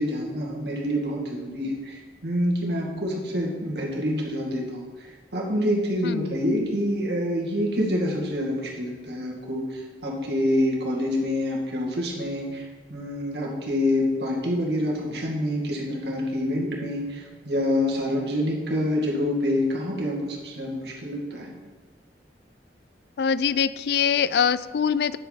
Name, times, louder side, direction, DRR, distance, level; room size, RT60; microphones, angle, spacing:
voice 1, 0.0-21.5, left 1 dB, 75° right, -2 dB, 2.1 m, -27 dB
voice 2, 23.2-25.2, left 7 dB, 65° left, 16 dB, 0.3 m, -23 dB
9.7 x 8.1 x 4.1 m, 1.4 s
head